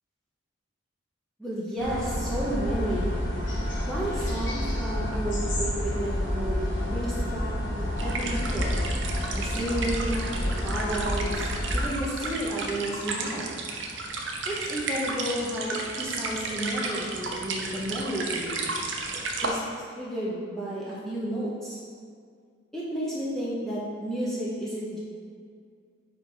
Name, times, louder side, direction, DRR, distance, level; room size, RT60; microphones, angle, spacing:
voice 1, 1.4-3.1 3.8-8.8 9.3-13.5 14.5-18.7 19.4-19.6 20.0-21.8 22.7-25.0, right 1 dB, ahead, -8 dB, 0.8 m, -32 dB
sound 1, 1.8-11.8, left 1 dB, 70° left, 1.4 m, -29 dB
sound 2, 8.0-19.5, right 3 dB, 70° right, 0.7 m, -33 dB
4.9 x 4.6 x 4.9 m, 2.1 s
head